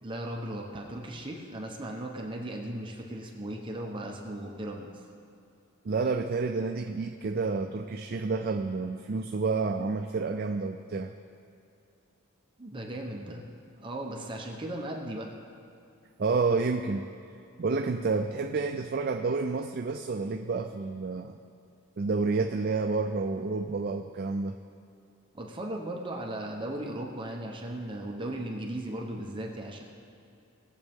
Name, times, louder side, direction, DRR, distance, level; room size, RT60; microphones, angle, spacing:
voice 1, 0.0-4.9 12.6-13.4 13.8-15.3 25.3-29.8, right 1 dB, 25° right, 0 dB, 0.9 m, -37 dB
voice 2, 5.8-11.1 16.2-17.1 17.6-21.4 22.0-24.6, right 4 dB, 45° right, 5 dB, 0.4 m, -29 dB
19.0 x 7.5 x 3.6 m, 2.6 s
head